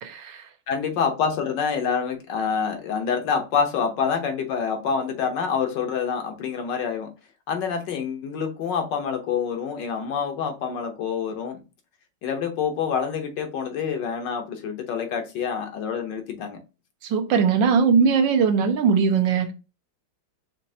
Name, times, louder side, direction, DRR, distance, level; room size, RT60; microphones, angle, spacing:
voice 1, 0.0-0.5 17.0-19.5, right 6 dB, 75° right, 1.3 m, -20 dB
voice 2, 0.7-7.1 7.5-11.6 12.2-16.6, left 6 dB, 70° left, 1.3 m, -27 dB
5.3 x 2.8 x 2.7 m
omnidirectional pair, 2.2 m